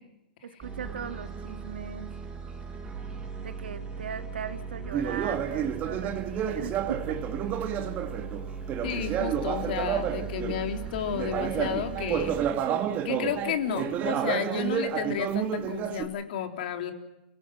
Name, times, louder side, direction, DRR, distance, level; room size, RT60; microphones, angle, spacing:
voice 1, 0.4-2.1 3.4-7.2, right 7 dB, 85° right, 8 dB, 2.1 m, -38 dB
sound 1, 0.6-12.5, right 5 dB, 15° right, 6.1 m, -39 dB
Conversation, 4.9-10.7 11.1-16.0, right 9 dB, 30° right, 2.2 m, -30 dB
voice 2, 8.8-12.4 13.0-16.9, left 8 dB, 60° left, 6 dB, 3.5 m, -32 dB
29.0 x 18.0 x 6.2 m, 0.92 s
hypercardioid pair, 130°, 5 cm